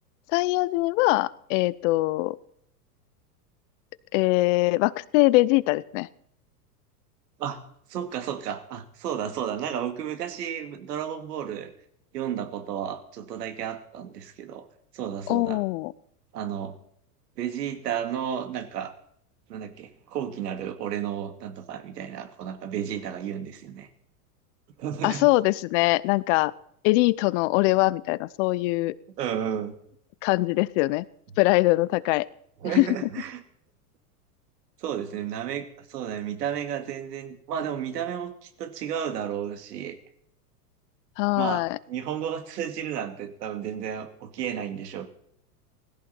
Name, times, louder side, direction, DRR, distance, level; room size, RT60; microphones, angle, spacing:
voice 1, 0.3-2.4 4.1-6.1 15.3-15.9 25.0-26.5 26.8-28.9 30.2-31.1 31.4-32.3 32.7-32.9 41.2-41.8, left 21 dB, 50° left, 20 dB, 0.8 m, -22 dB
voice 2, 7.9-11.7 12.1-14.7 14.9-15.6 16.3-16.7 17.4-18.9 19.5-23.9 24.8-25.3 29.2-29.8 32.6-33.4 34.8-40.0 41.3-45.1, right 9 dB, 75° right, 7 dB, 2.7 m, -32 dB
18.0 x 15.5 x 4.5 m, 0.70 s
hypercardioid pair, 115°, 47 cm